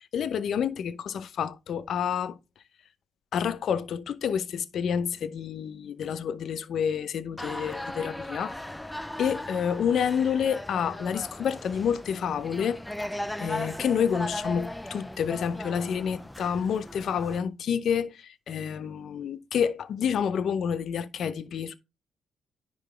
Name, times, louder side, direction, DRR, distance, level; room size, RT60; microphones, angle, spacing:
voice 1, 0.0-2.4 3.3-8.6 9.2-12.8 13.4-21.8, left 7 dB, 65° left, 0.6 m, -29 dB
sound 1, 7.4-17.4, left 1 dB, 5° left, 0.5 m, -37 dB
10.0 x 3.9 x 3.3 m
cardioid pair, 90°, 0 cm